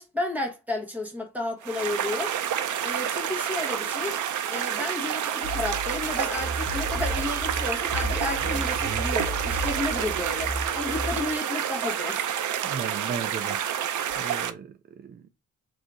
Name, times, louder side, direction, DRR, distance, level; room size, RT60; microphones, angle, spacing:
voice 1, 0.0-2.3 2.8-4.2 4.5-12.3, left 2 dB, 5° right, 1.2 m, -32 dB
sound 1, 1.6-14.5, right 9 dB, 75° right, 0.6 m, -29 dB
sound 2, 5.4-11.1, right 1 dB, 55° right, 0.9 m, -37 dB
sound 3, 6.1-11.4, equal, 25° left, 1.0 m, -35 dB
voice 2, 12.6-13.6 14.2-15.3, right 6 dB, 35° right, 0.4 m, -36 dB
4.7 x 2.7 x 3.8 m
wide cardioid pair, 165°, 30 cm